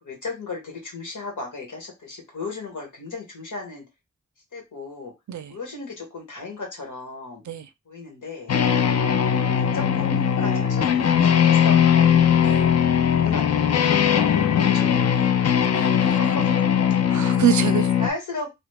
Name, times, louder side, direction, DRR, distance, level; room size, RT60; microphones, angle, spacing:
voice 1, 0.0-3.8 4.5-5.1 5.5-7.4 7.8-8.5 9.5-12.2 13.1-14.0 14.6-15.4 16.2-16.4 18.0-18.6, left 3 dB, 90° left, 1.5 m, -35 dB
sound 1, 8.5-18.1, left 8 dB, 55° left, 0.5 m, -19 dB
voice 2, 15.7-16.2 17.1-17.9, right 11 dB, 75° right, 0.5 m, -26 dB
3.1 x 2.4 x 3.3 m
wide cardioid pair, 85°, 30 cm